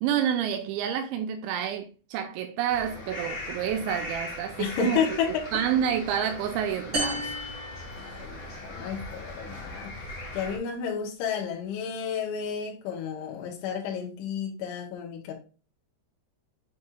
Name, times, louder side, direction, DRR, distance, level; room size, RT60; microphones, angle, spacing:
voice 1, 0.0-5.0 5.5-7.3, right 9 dB, 85° right, 2.9 m, -28 dB
sound 1, 2.7-10.6, left 2 dB, 40° left, 3.1 m, -39 dB
voice 2, 4.6-5.4 8.0-10.0 10.3-15.3, left 7 dB, 85° left, 3.5 m, -31 dB
sound 2, 6.9-8.7, equal, 25° right, 2.8 m, -33 dB
7.6 x 6.2 x 2.4 m
omnidirectional pair, 5.3 m